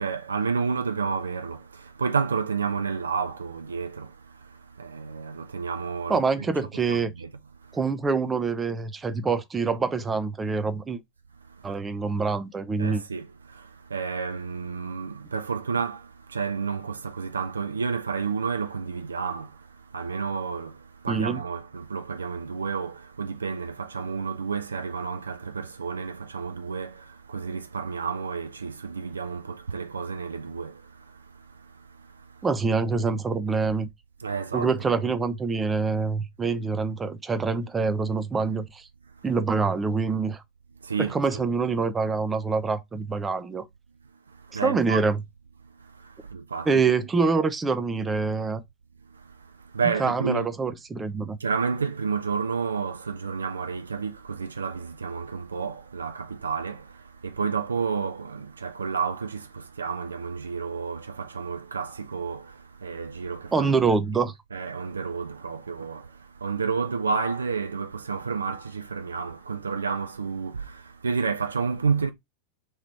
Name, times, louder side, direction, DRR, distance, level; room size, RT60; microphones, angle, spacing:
voice 1, 0.0-4.1 4.8-6.4 6.9-7.3 12.8-19.5 19.9-20.8 21.0-30.8 34.2-34.7 40.8-41.5 44.5-45.0 46.3-46.7 49.7-50.5 51.4-63.9 64.5-66.1 66.4-72.1, right 5 dB, 75° right, 0.5 m, -30 dB
voice 2, 6.1-7.1 7.7-11.0 11.6-13.0 21.1-21.4 32.4-33.9 34.5-38.8 39.2-40.4 41.1-43.6 44.5-45.2 46.7-48.6 50.0-51.4 63.5-64.3, right 4 dB, 15° right, 0.5 m, -25 dB
3.1 x 2.9 x 4.2 m
figure-of-eight pair, 90°, 0 cm